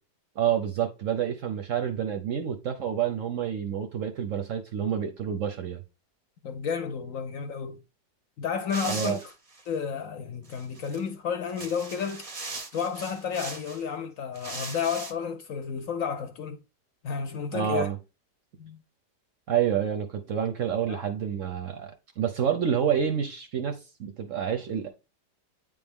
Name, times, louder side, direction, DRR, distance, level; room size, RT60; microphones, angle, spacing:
voice 1, 0.4-5.8 8.8-9.2 17.5-18.0 19.5-24.9, right 8 dB, 65° right, 0.8 m, -28 dB
voice 2, 6.4-7.8 8.4-9.2 9.7-12.3 12.7-16.6 17.0-17.9 18.6-18.8 20.9-21.0, left 6 dB, 65° left, 0.9 m, -31 dB
sound 1, 8.7-9.7 10.4-11.0 11.5-13.8 14.3-15.1, right 3 dB, 40° right, 0.5 m, -39 dB
9.0 x 3.5 x 3.5 m
omnidirectional pair, 1.8 m